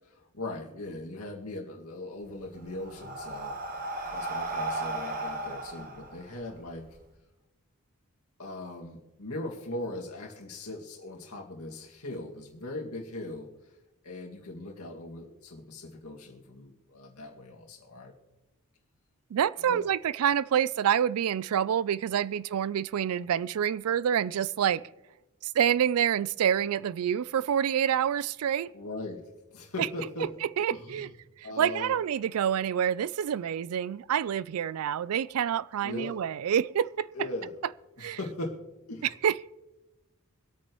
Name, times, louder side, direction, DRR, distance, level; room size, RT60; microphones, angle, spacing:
voice 1, 0.2-3.6 4.1-6.9 8.4-13.5 14.0-18.1 19.6-19.9 28.7-29.2 29.5-30.3 30.7-31.1 31.4-32.0 35.8-36.2 37.1-37.5 38.0-38.6 38.9-39.1, left 2 dB, 80° left, 2.1 m, -39 dB
Breathing, 2.2-7.0, right 2 dB, 40° right, 1.2 m, -35 dB
voice 2, 19.3-24.8 25.4-28.7 30.6-31.1 31.4-37.1 38.0-38.2 39.2-39.4, right 9 dB, 75° right, 0.3 m, -27 dB
24.5 x 8.8 x 3.1 m
head